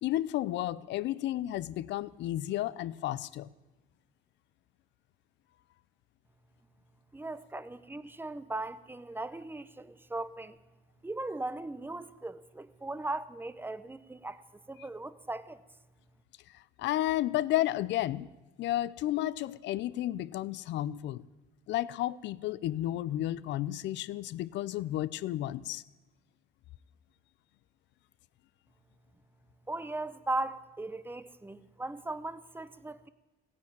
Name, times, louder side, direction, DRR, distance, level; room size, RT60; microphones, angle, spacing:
voice 1, 0.0-3.5 16.8-18.3 18.6-21.2 21.7-25.8, left 14 dB, 70° left, 0.6 m, -32 dB
voice 2, 7.1-10.6 11.0-14.4 14.7-15.6 29.7-33.1, right 2 dB, 10° right, 0.9 m, -38 dB
15.5 x 9.6 x 9.0 m
supercardioid pair, 85°, 19 cm